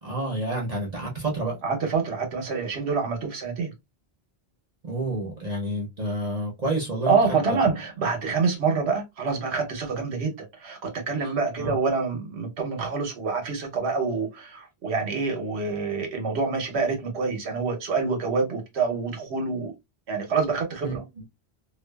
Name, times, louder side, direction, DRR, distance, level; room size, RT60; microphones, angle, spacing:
voice 1, 0.0-1.6 4.8-7.2 7.5-7.6 11.2-11.3 11.6-11.7 20.8-21.0, right 1 dB, 45° right, 0.9 m, -29 dB
voice 2, 1.6-3.7 7.1-19.7 20.1-21.0, right 4 dB, 85° right, 1.1 m, -26 dB
2.5 x 2.4 x 2.2 m
omnidirectional pair, 1.1 m